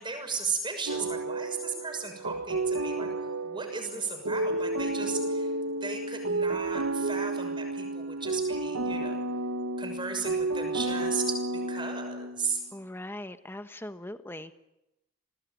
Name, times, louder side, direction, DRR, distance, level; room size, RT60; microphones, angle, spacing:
voice 1, 0.0-3.1 3.4-5.5 5.8-9.3 9.8-12.6, right 4 dB, 20° right, 6 dB, 6.3 m, -36 dB
sound 1, 0.9-12.6, right 2 dB, 80° right, 1.6 m, -31 dB
voice 2, 12.7-14.5, left 1 dB, 10° left, 10 dB, 1.3 m, -40 dB
28.5 x 20.0 x 9.4 m, 0.90 s
head